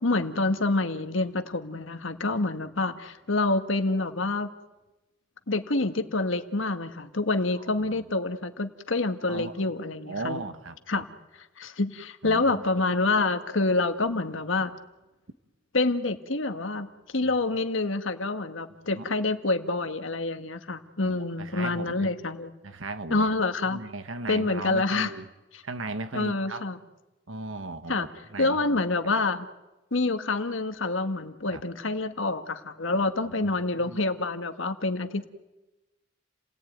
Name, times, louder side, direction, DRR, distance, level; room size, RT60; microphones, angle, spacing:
voice 1, 0.0-4.5 5.5-10.4 10.9-11.1 11.6-14.7 15.7-22.5 23.1-23.8 24.3-25.1 26.1-26.8 27.9-28.1 28.4-29.5 29.9-35.3, left 3 dB, 80° left, 8 dB, 1.7 m, -27 dB
voice 2, 10.0-11.0 12.2-12.6 18.9-19.0 21.0-22.1 22.6-23.3 23.7-25.2 25.6-26.6 27.3-28.8 31.5-31.6 33.2-34.0, right 2 dB, 85° right, 10 dB, 1.6 m, -37 dB
30.0 x 18.5 x 9.4 m, 1.0 s
head